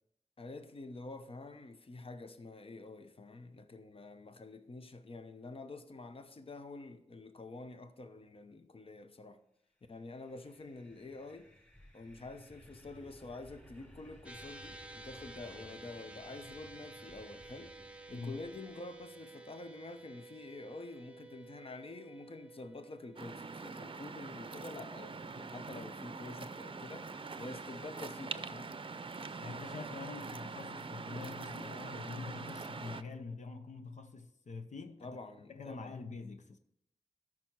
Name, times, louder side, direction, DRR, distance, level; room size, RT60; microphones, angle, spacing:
voice 1, 0.4-9.4 9.9-11.5 11.9-17.7 18.1-28.8 35.0-36.0, left 3 dB, 50° left, 0.8 m, -48 dB
sound 1, 9.9-19.1, equal, 15° left, 3.3 m, -59 dB
sound 2, 14.2-26.8, right 2 dB, 10° right, 0.7 m, -53 dB
Waves surf, 23.2-33.0, right 4 dB, 45° right, 0.5 m, -44 dB
voice 2, 29.4-35.1 35.5-36.6, left 4 dB, 80° left, 0.8 m, -45 dB
13.5 x 6.1 x 4.7 m
wide cardioid pair, 85°, 12 cm